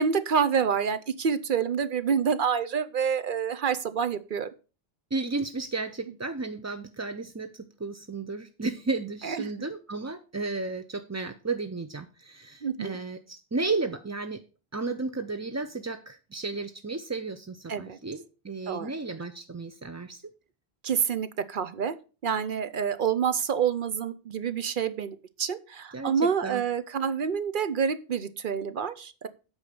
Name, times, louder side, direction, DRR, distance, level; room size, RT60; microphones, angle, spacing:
voice 1, 0.0-4.5 9.2-9.5 12.6-13.0 17.7-18.0 18.7-18.9 20.8-21.9 22.2-29.3, right 7 dB, 60° right, 12 dB, 0.8 m, -27 dB
voice 2, 5.1-14.4 14.7-20.2 25.9-26.6, right 3 dB, 25° right, 8 dB, 0.4 m, -33 dB
8.2 x 4.9 x 6.7 m, 0.34 s
omnidirectional pair, 1.0 m